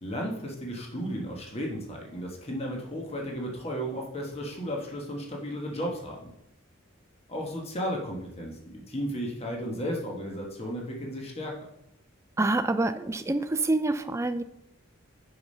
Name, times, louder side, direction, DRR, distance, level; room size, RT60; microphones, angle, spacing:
voice 1, 0.0-6.2 7.3-11.6, equal, 30° left, 0 dB, 1.3 m, -34 dB
voice 2, 12.4-14.4, right 2 dB, 15° right, 10 dB, 0.3 m, -26 dB
6.7 x 6.0 x 5.4 m, 0.81 s
head